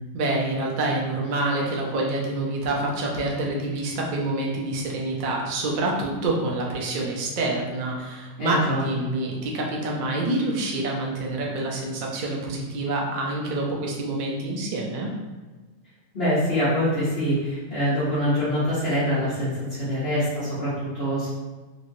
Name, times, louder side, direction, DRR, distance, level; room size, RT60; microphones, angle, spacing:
voice 1, 0.1-15.1, right 2 dB, 50° right, -2 dB, 0.6 m, -27 dB
voice 2, 8.4-8.8 16.1-21.3, equal, 50° left, -13 dB, 1.3 m, -24 dB
3.1 x 3.0 x 2.6 m, 1.3 s
omnidirectional pair, 1.4 m